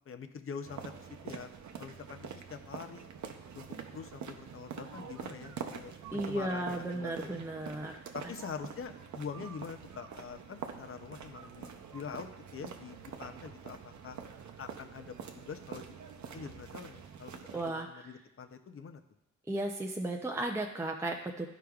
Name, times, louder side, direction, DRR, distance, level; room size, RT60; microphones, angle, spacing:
voice 1, 0.1-1.5 1.8-3.1 3.5-7.4 8.1-12.3 12.5-14.2 14.6-15.9 16.3-19.0, left 6 dB, 45° left, 8 dB, 0.6 m, -45 dB
sound 1, 0.7-17.7, right 7 dB, 70° right, 0.7 m, -46 dB
voice 2, 6.1-8.0 17.5-18.1 19.5-21.5, right 1 dB, 10° right, 2 dB, 0.4 m, -35 dB
13.0 x 4.9 x 2.3 m, 0.84 s
wide cardioid pair, 130°, 30 cm